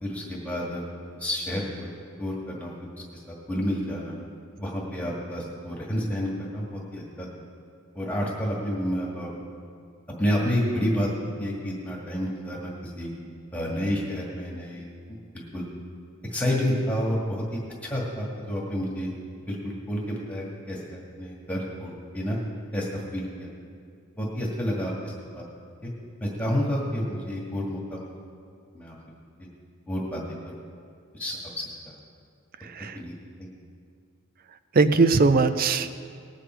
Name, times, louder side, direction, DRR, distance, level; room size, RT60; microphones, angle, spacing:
voice 1, 0.0-1.9 2.2-2.7 3.1-4.2 4.6-7.3 7.9-9.3 10.2-11.1 11.4-13.1 13.5-14.9 15.3-15.7 16.3-19.1 19.5-22.4 22.7-23.5 24.2-25.4 25.8-25.9 26.2-28.1 28.7-28.9 29.9-30.2 31.1-31.9 32.9-33.5, equal, 5° left, -4 dB, 1.9 m, -30 dB
voice 2, 32.6-33.0 34.7-35.9, right 3 dB, 40° right, 11 dB, 0.5 m, -20 dB
19.5 x 8.4 x 4.5 m, 2.3 s
head